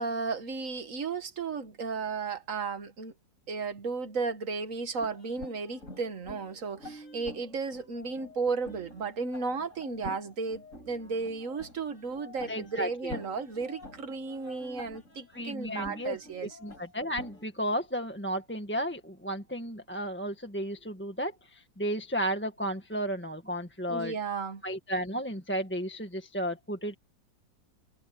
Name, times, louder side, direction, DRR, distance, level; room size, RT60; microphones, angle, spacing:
voice 1, 0.0-3.1 3.5-16.6 23.9-24.6, right 4 dB, 50° right, 1.9 m, -34 dB
sound 1, 5.0-17.4, left 1 dB, 45° left, 6.3 m, -48 dB
voice 2, 12.5-13.1 15.3-16.2 16.6-24.1 24.6-26.9, equal, 5° left, 1.5 m, -33 dB
omnidirectional pair, 1.9 m